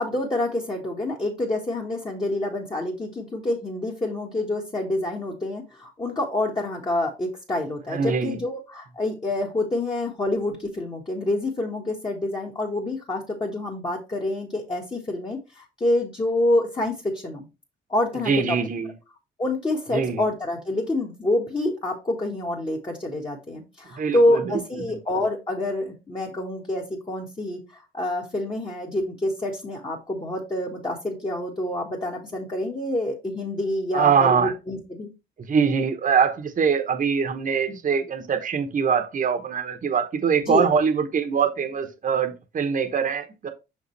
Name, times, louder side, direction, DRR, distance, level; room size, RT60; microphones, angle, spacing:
voice 1, 0.0-17.4 17.9-18.6 19.4-35.1 40.4-40.7, left 1 dB, 25° left, 1.6 m, -27 dB
voice 2, 7.9-8.4 18.3-18.9 19.9-20.2 24.0-24.6 33.9-34.5 35.4-43.5, right 6 dB, 40° right, 1.0 m, -23 dB
6.0 x 5.1 x 3.3 m
cardioid pair, 90°, 20 cm